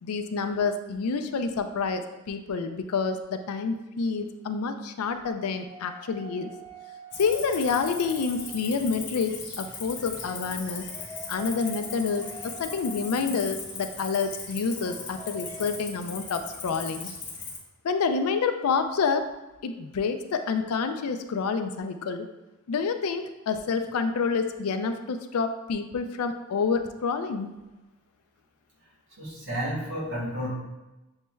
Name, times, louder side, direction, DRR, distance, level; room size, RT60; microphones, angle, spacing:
voice 1, 0.0-6.5 7.2-10.9 11.3-17.1 17.8-19.2 19.6-22.3 22.7-27.5, left 5 dB, 80° left, 7 dB, 0.4 m, -28 dB
sound 1, 5.6-9.1 10.3-13.7 14.7-15.7, right 2 dB, 10° left, 0.5 m, -46 dB
Cricket, 7.1-17.6, left 5 dB, 55° left, 0.9 m, -39 dB
voice 2, 29.2-30.5, equal, 55° right, -4 dB, 1.4 m, -31 dB
7.2 x 3.1 x 2.2 m, 1.1 s
head